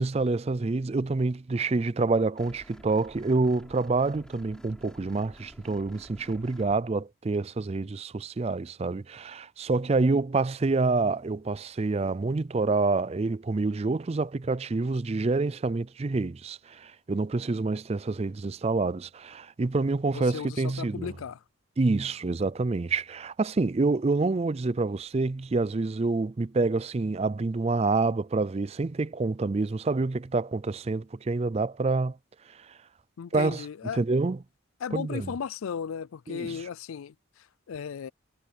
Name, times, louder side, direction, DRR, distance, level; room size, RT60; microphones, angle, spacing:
voice 1, 0.0-21.1 21.8-32.2 32.5-32.7 33.3-33.7 34.0-34.4 34.9-35.3 36.3-36.6, right 3 dB, 30° right, 0.4 m, -27 dB
sound 1, 2.4-6.8, equal, 5° left, 4.5 m, -51 dB
voice 2, 20.1-21.4 33.2-34.0 34.8-38.1, left 6 dB, 85° left, 0.4 m, -36 dB
head